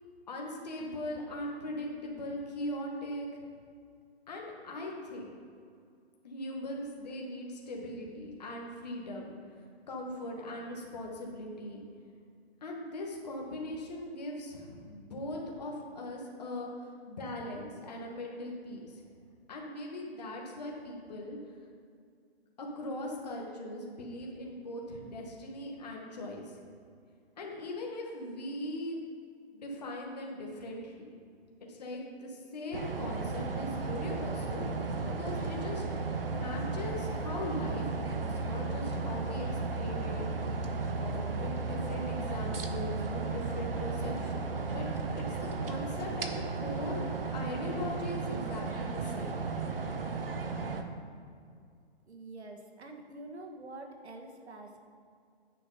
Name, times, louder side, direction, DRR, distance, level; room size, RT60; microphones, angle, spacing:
voice 1, 0.3-3.4 4.3-5.3 6.2-9.3 9.9-11.8 12.6-19.0 19.5-21.4 22.6-26.6 27.4-29.0 29.5-31.1 31.7-35.8 36.2-40.5 41.0-44.9 45.2-47.0 47.3-49.3, left 1 dB, 40° left, -1 dB, 1.8 m, -40 dB
sound 1, 32.7-50.8, right 4 dB, 60° right, 1.0 m, -34 dB
voice 2, 52.1-54.8, right 2 dB, 85° right, 3 dB, 1.6 m, -46 dB
9.5 x 6.4 x 5.1 m, 2.2 s
hypercardioid pair, 175°, 32 cm